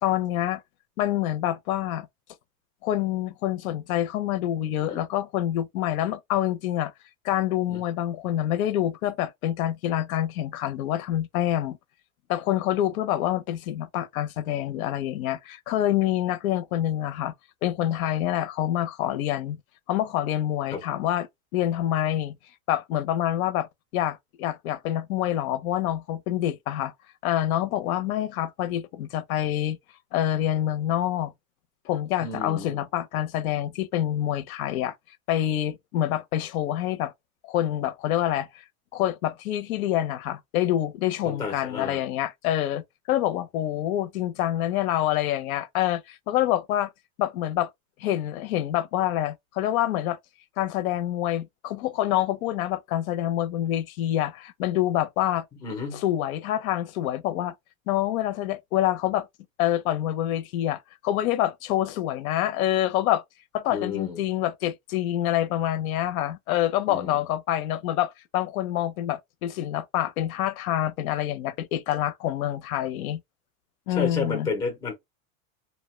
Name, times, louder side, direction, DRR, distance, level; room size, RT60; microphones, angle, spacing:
voice 1, 0.0-0.6 1.0-2.1 2.8-6.9 7.2-11.8 12.3-17.3 17.6-19.6 19.9-22.3 22.7-23.7 23.9-26.9 27.2-29.8 30.1-31.3 31.9-34.9 35.3-37.1 37.4-38.5 38.9-42.8 43.1-46.9 47.2-47.7 48.0-50.2 50.6-55.4 55.9-57.5 57.9-59.3 59.6-63.2 63.5-73.2 73.9-74.5, left 12 dB, 90° left, 0.6 m, -26 dB
voice 2, 32.2-32.8 41.2-42.0 55.6-56.0 63.7-64.2 66.9-67.2 73.9-74.9, left 4 dB, 10° left, 0.4 m, -32 dB
2.7 x 2.1 x 3.0 m
supercardioid pair, 160°, 41 cm